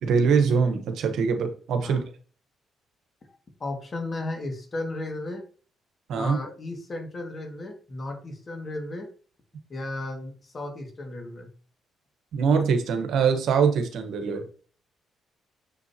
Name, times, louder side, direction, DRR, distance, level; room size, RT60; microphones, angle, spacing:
voice 1, 0.0-2.0 6.1-6.4 12.3-14.5, right 6 dB, 75° right, 6 dB, 1.1 m, -23 dB
voice 2, 3.3-5.4 6.1-9.1 9.7-11.5, left 2 dB, 40° left, 3 dB, 2.0 m, -35 dB
6.9 x 6.8 x 2.9 m, 0.41 s
cardioid pair, 90°, 0 cm